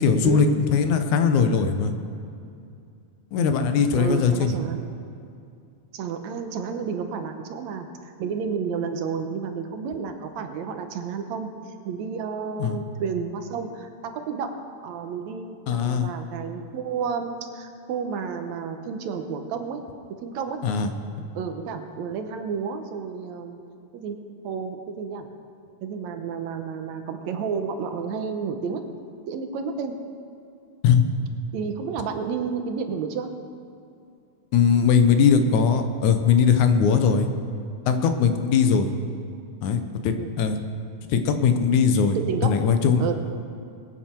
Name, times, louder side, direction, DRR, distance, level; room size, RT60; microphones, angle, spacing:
voice 1, 0.0-1.9 3.3-4.5 12.6-12.8 15.7-16.1 20.6-20.9 30.8-31.0 34.5-37.3 37.9-38.9 39.6-40.6 41.1-42.2 42.4-43.1, left 6 dB, 85° left, 7 dB, 2.3 m, -20 dB
voice 2, 4.0-4.8 5.9-11.5 11.8-14.6 14.8-19.8 20.2-20.6 21.4-23.6 23.9-24.2 24.4-25.3 25.8-28.8 29.3-29.9 31.5-33.3 40.2-40.3 42.2-42.6 43.0-43.1, right 6 dB, 75° right, 6 dB, 2.1 m, -31 dB
22.0 x 9.0 x 4.5 m, 2.5 s
omnidirectional pair, 3.3 m